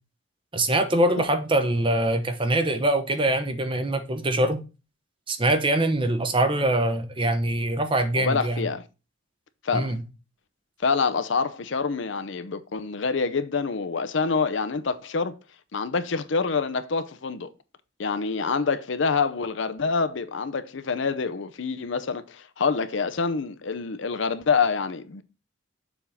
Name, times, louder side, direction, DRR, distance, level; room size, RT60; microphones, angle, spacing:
voice 1, 0.5-4.6 5.3-8.7 9.7-10.0, right 1 dB, 25° right, 0.8 m, -23 dB
voice 2, 8.2-8.8 9.6-9.9 10.8-15.3 15.7-17.5 18.0-25.2, left 5 dB, 65° left, 0.6 m, -26 dB
7.1 x 3.6 x 5.5 m
head